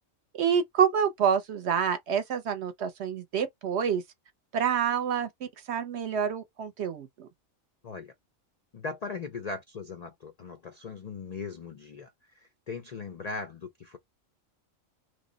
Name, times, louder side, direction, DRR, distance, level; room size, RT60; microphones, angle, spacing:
voice 1, 0.3-4.0 4.5-5.3 5.7-7.3, right 7 dB, 65° right, 0.8 m, -27 dB
voice 2, 8.7-14.0, left 4 dB, 65° left, 0.4 m, -39 dB
3.2 x 2.1 x 3.8 m
omnidirectional pair, 1.4 m